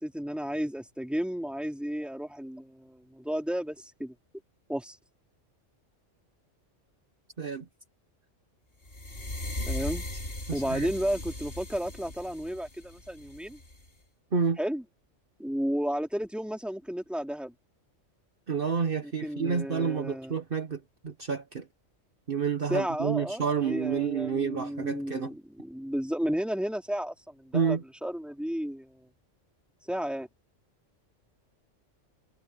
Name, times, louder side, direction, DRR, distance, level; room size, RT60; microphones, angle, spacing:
voice 1, 0.0-4.1 4.7-5.0 9.7-10.0 10.5-13.6 14.6-14.8 15.4-17.5 19.0-20.3 22.7-29.1 29.9-30.3, equal, ahead, 3.1 m, -33 dB
sound 1, 8.9-13.9, left 1 dB, 50° left, 3.6 m, -38 dB
voice 2, 10.5-10.9 14.3-14.6 18.5-21.7 22.3-25.3 27.5-27.8, right 6 dB, 50° right, 1.3 m, -29 dB
omnidirectional pair, 1.3 m